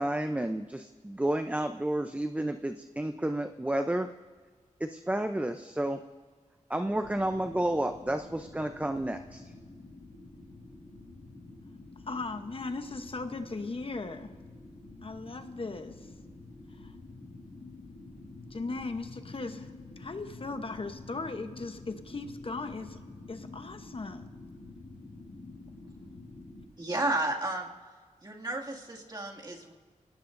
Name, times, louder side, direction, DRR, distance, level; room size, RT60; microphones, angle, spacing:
voice 1, 0.0-4.1 4.8-6.0 6.7-9.4, right 1 dB, 10° right, 7 dB, 0.6 m, -31 dB
sound 1, 6.9-26.6, left 2 dB, 85° left, 6.0 m, -48 dB
voice 2, 12.0-14.3 15.0-16.1 16.7-17.0 18.5-23.0 23.3-24.3, left 3 dB, 45° left, 7 dB, 0.9 m, -38 dB
voice 3, 26.8-27.7 28.2-29.7, right 2 dB, 35° right, -2 dB, 2.2 m, -32 dB
25.5 x 18.0 x 2.6 m, 1.5 s
wide cardioid pair, 85°, 13 cm